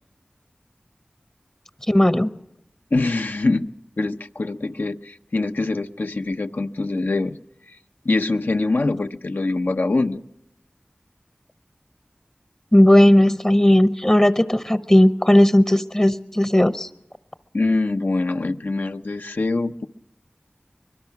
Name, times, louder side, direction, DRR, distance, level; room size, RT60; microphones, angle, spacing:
voice 1, 1.9-2.3 12.7-16.9, left 1 dB, 20° left, 12 dB, 0.7 m, -16 dB
voice 2, 2.9-3.7 4.0-7.4 8.0-10.2 17.5-19.9, left 2 dB, 80° left, 7 dB, 0.8 m, -23 dB
24.0 x 22.0 x 5.8 m, 0.80 s
wide cardioid pair, 50°, 3 cm